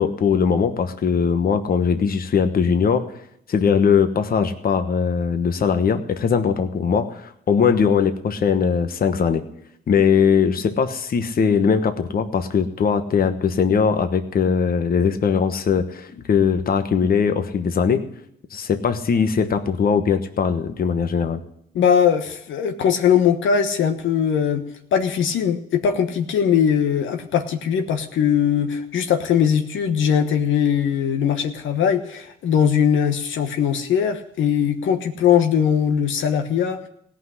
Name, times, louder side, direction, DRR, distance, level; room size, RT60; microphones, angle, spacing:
voice 1, 0.0-3.1 3.5-9.4 9.9-18.0 18.5-21.4, left 6 dB, 50° left, 8 dB, 1.2 m, -20 dB
voice 2, 21.7-24.6 24.9-36.9, left 8 dB, 75° left, 6 dB, 1.2 m, -20 dB
17.0 x 5.9 x 9.8 m, 0.73 s
cardioid pair, 90°, 20 cm